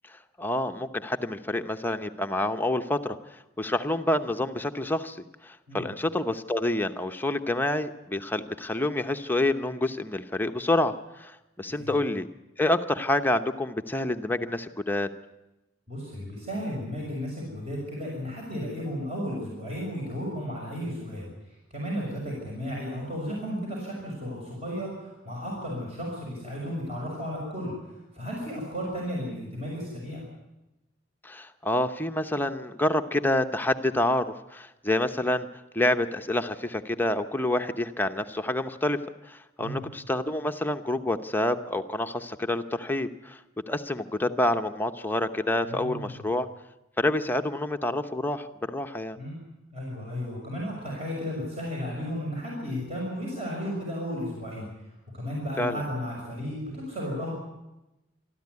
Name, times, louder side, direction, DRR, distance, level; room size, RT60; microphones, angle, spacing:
voice 1, 0.1-12.3 12.6-15.1 31.2-35.5 35.7-39.0 39.3-43.4 43.7-46.5 47.0-49.2 55.6-55.8, left 1 dB, 10° left, 7 dB, 0.8 m, -28 dB
voice 2, 15.9-21.3 21.7-27.7 28.1-30.3 39.6-39.8 45.6-46.2 49.2-49.4 49.7-54.7 55.1-57.4, equal, 35° right, -3 dB, 6.2 m, -34 dB
24.5 x 13.5 x 9.6 m, 0.97 s
head